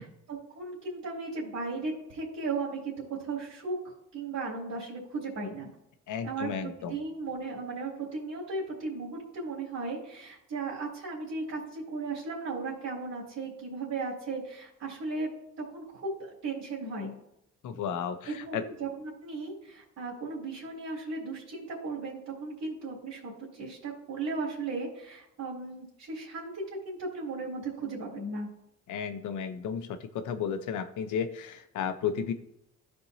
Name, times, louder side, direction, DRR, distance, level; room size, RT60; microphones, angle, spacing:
voice 1, 0.0-5.7 6.2-15.3 15.7-17.1 18.3-28.5, right 3 dB, 65° right, -7 dB, 3.2 m, -36 dB
voice 2, 6.1-6.9 17.6-18.7 28.9-32.3, left 7 dB, 80° left, 9 dB, 0.9 m, -33 dB
13.5 x 4.6 x 2.8 m, 0.79 s
cardioid pair, 90°, 30 cm